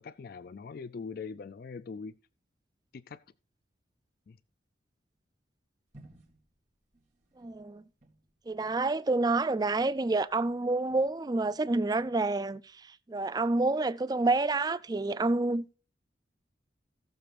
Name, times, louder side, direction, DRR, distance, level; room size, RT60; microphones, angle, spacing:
voice 1, 0.0-2.1 2.9-3.2 4.3-4.4, left 5 dB, 50° left, 0.4 m, -42 dB
sound 1, 5.9-10.6 10.9-12.2, right 1 dB, 40° right, 2.3 m, -60 dB
voice 2, 7.4-7.8 8.5-15.7, right 3 dB, 20° right, 0.4 m, -28 dB
18.0 x 6.9 x 2.5 m
head